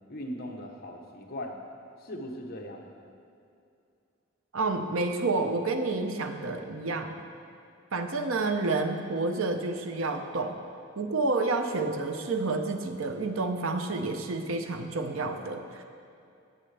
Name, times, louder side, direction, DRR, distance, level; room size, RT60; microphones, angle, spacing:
voice 1, 0.1-1.5 2.0-2.9, equal, 50° left, 1 dB, 1.0 m, -39 dB
voice 2, 4.5-7.1 7.9-10.6 11.0-15.8, right 3 dB, 80° right, 6 dB, 0.7 m, -29 dB
17.5 x 6.5 x 3.4 m, 2.5 s
head